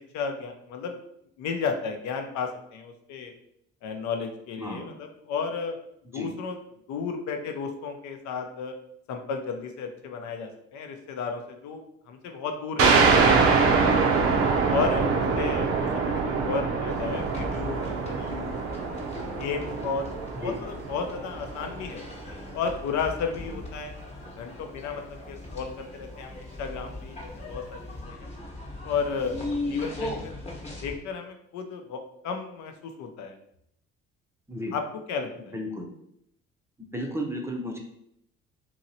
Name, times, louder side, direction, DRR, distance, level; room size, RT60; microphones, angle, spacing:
voice 1, 0.1-1.0 1.4-3.3 3.8-5.8 6.1-6.6 6.9-8.7 9.1-11.8 12.1-14.1 14.7-15.1 15.4-18.5 19.4-20.1 20.4-22.0 22.5-23.9 24.4-28.3 28.8-33.4 34.7-34.8 35.1-35.6, left 5 dB, 65° left, 5 dB, 0.6 m, -33 dB
voice 2, 4.6-4.9 6.1-6.3 20.4-20.6 34.5-34.7 35.5-35.9 36.9-37.8, equal, 10° right, 0 dB, 0.6 m, -33 dB
sound 1, 12.8-22.0, right 4 dB, 50° right, 0.6 m, -24 dB
sound 2, 16.9-31.0, left 2 dB, 20° left, 1.0 m, -38 dB
2.9 x 2.7 x 2.7 m, 0.75 s
hypercardioid pair, 65°, 31 cm